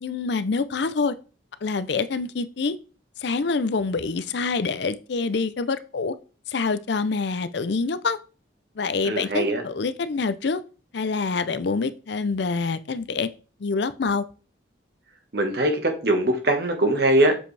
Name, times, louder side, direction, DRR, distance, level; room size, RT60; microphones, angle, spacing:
voice 1, 0.0-1.2 1.6-2.8 3.2-6.1 6.5-8.2 8.8-10.6 10.9-13.3 13.6-14.2, left 4 dB, 60° left, 13 dB, 0.5 m, -26 dB
voice 2, 9.0-9.6 15.3-17.4, right 1 dB, 55° right, 4 dB, 1.4 m, -21 dB
7.3 x 5.1 x 3.3 m, 0.36 s
head